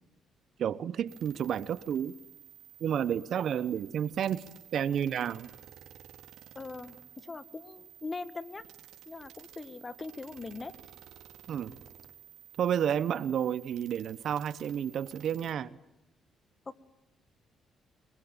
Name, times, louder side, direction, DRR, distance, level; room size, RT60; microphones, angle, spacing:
voice 1, 0.6-2.1 2.8-4.4 4.7-5.5 11.5-11.8 12.6-15.8, right 9 dB, 65° right, 1.0 m, -31 dB
sound 1, 1.1-15.5, right 11 dB, 90° right, 3.8 m, -53 dB
voice 2, 6.6-8.6 9.1-10.7 16.7-16.8, left 3 dB, 30° left, 1.9 m, -41 dB
25.5 x 22.0 x 9.0 m
cardioid pair, 90°, 0 cm